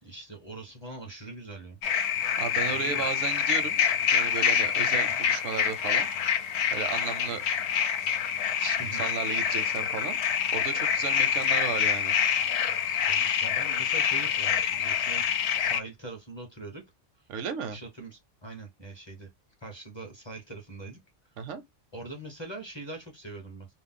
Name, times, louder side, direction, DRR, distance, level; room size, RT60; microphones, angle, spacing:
voice 1, 0.0-1.8 2.7-3.1 5.1-5.2 8.8-9.1 13.1-15.3 15.6-16.8 17.7-19.3 19.6-21.0 21.9-23.7, right 2 dB, 30° left, 0.6 m, -42 dB
sound 1, 1.8-15.8, left 8 dB, 70° left, 0.8 m, -26 dB
voice 2, 2.4-3.8 4.1-6.1 6.7-7.4 8.6-10.2 10.5-12.2 17.3-17.8 21.4-21.6, right 7 dB, 85° right, 0.9 m, -34 dB
2.5 x 2.0 x 3.5 m
omnidirectional pair, 1.2 m